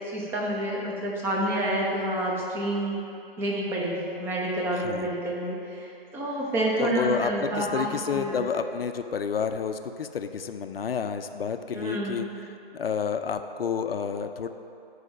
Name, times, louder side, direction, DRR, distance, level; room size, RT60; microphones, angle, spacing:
voice 1, 0.0-3.0 3.4-8.4 11.7-12.4, right 1 dB, 5° right, -3 dB, 0.7 m, -29 dB
voice 2, 4.7-5.1 6.8-12.2 12.7-14.5, left 6 dB, 70° left, 8 dB, 0.5 m, -30 dB
8.0 x 4.9 x 5.3 m, 2.7 s
figure-of-eight pair, 135°, 30 cm